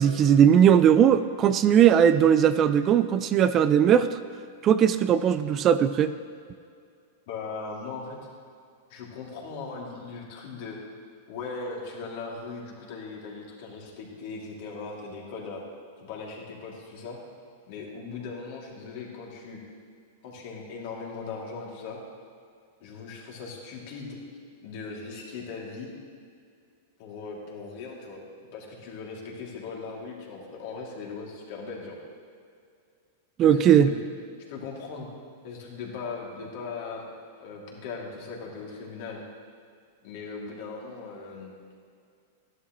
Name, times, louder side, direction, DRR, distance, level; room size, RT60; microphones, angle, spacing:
voice 1, 0.0-4.2 4.6-6.1 33.4-33.9, right 9 dB, 35° right, 13 dB, 0.4 m, -19 dB
voice 2, 7.3-8.2 8.9-10.8 11.3-15.6 16.0-17.2 17.7-19.6 20.2-22.0 22.8-24.2 24.6-25.9 27.0-32.0 33.4-33.9 34.5-35.1 35.4-37.1 37.3-39.2 40.0-41.5, left 4 dB, 60° left, -2 dB, 2.5 m, -39 dB
13.0 x 11.0 x 3.0 m, 2.3 s
hypercardioid pair, 110°, 0 cm